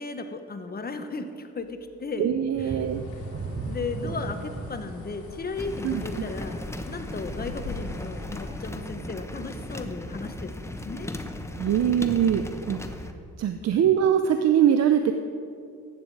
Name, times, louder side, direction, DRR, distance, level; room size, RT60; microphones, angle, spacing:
voice 1, 0.0-2.3 2.6-2.7 3.7-11.1 13.6-13.9, left 4 dB, 30° left, 7 dB, 1.2 m, -35 dB
voice 2, 2.2-3.0 5.8-6.0 11.6-12.8 13.4-15.1, right 9 dB, 60° right, 7 dB, 0.7 m, -22 dB
Bird, 2.5-8.8, left 3 dB, 75° left, 2.7 m, -43 dB
sound 1, 2.5-8.0 8.4-8.6 9.1-9.2, right 3 dB, 40° right, 1.1 m, -37 dB
sound 2, 5.6-13.1, left 1 dB, 10° left, 0.9 m, -36 dB
14.5 x 9.8 x 4.8 m, 2.4 s
cardioid pair, 90°, 30 cm